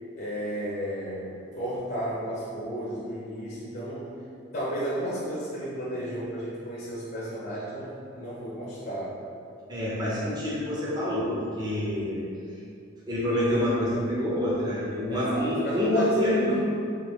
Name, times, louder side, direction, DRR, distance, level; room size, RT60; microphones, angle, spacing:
voice 1, 0.2-4.2 4.5-9.2 15.1-16.1 16.5-16.6, equal, 50° left, -7 dB, 0.7 m, -33 dB
voice 2, 9.7-12.3 13.1-16.5, left 1 dB, 20° right, -7 dB, 0.7 m, -27 dB
3.7 x 3.2 x 3.0 m, 2.5 s
head